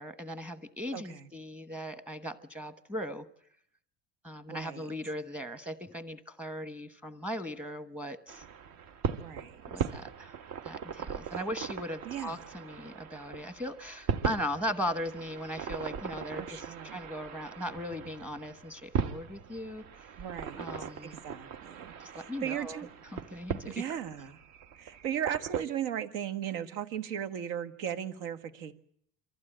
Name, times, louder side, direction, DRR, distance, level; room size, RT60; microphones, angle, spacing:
voice 1, 0.0-3.3 4.2-8.4 9.7-10.3 10.6-20.1 20.6-21.1 22.0-22.8 23.1-23.7, equal, 5° right, 11 dB, 1.1 m, -38 dB
voice 2, 0.9-1.3 4.5-4.9 9.1-9.9 12.0-12.5 16.4-17.0 20.2-22.9 23.7-24.4 24.8-28.7, right 9 dB, 80° right, 10 dB, 1.7 m, -37 dB
sound 1, 8.3-25.6, right 7 dB, 50° right, 1.2 m, -39 dB
24.0 x 14.5 x 8.9 m, 0.69 s
cardioid pair, 155°, 35 cm